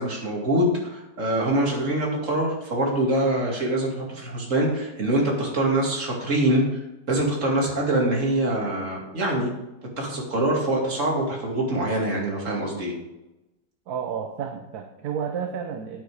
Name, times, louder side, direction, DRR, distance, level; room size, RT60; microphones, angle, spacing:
voice 1, 0.0-6.8 7.1-9.5 10.0-12.9, right 1 dB, 40° right, -1 dB, 2.6 m, -24 dB
voice 2, 13.9-16.0, right 7 dB, 60° right, 4 dB, 1.2 m, -31 dB
9.0 x 7.9 x 4.8 m, 0.99 s
omnidirectional pair, 2.0 m